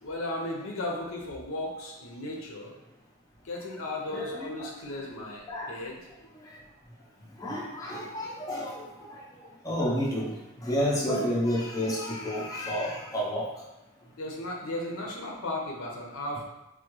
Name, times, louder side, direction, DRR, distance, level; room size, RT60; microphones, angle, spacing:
voice 1, 0.0-2.7 3.4-6.0 14.2-16.4, left 1 dB, 80° left, 0 dB, 0.6 m, -35 dB
voice 2, 4.1-4.7 5.5-5.7 7.4-9.1 9.6-10.3 10.6-13.5, equal, 15° left, -4 dB, 0.4 m, -30 dB
3.5 x 2.2 x 3.0 m, 0.96 s
head